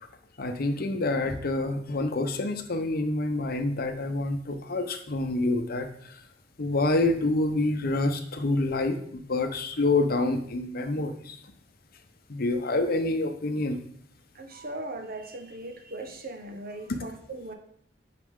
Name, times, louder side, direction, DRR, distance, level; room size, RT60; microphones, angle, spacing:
voice 1, 0.4-5.9 6.6-11.3 12.3-13.8, left 2 dB, 55° left, 7 dB, 0.8 m, -27 dB
voice 2, 14.3-17.5, right 2 dB, 55° right, 5 dB, 1.1 m, -39 dB
9.5 x 4.9 x 3.7 m, 0.64 s
head